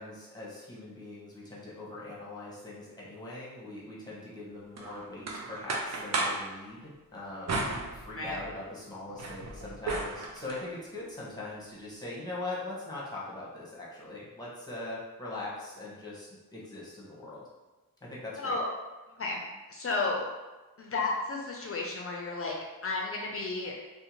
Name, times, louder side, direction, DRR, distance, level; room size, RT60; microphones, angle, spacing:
voice 1, 0.0-17.4 18.0-18.6, left 2 dB, 10° left, -6 dB, 0.8 m, -41 dB
sound 1, 4.8-6.5 7.5-8.5 8.9-10.7, right 2 dB, 50° right, 0.4 m, -34 dB
voice 2, 18.4-18.7 19.2-20.3 20.8-22.5 22.8-23.8, left 3 dB, 40° left, -1 dB, 0.4 m, -32 dB
2.6 x 2.1 x 2.9 m, 1.2 s
wide cardioid pair, 95°, 35 cm